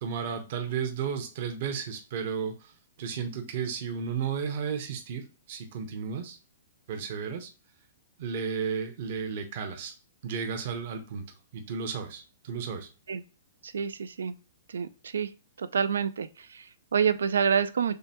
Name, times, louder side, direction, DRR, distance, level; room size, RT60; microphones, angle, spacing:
voice 1, 0.0-2.7 3.0-6.4 6.9-7.5 8.2-9.9 10.2-11.2 11.5-12.9, right 6 dB, 55° right, 0.9 m, -33 dB
voice 2, 13.6-14.3 14.7-15.3 15.6-18.0, right 7 dB, 85° right, 0.4 m, -28 dB
6.6 x 2.2 x 2.9 m
hypercardioid pair, 145°, 0 cm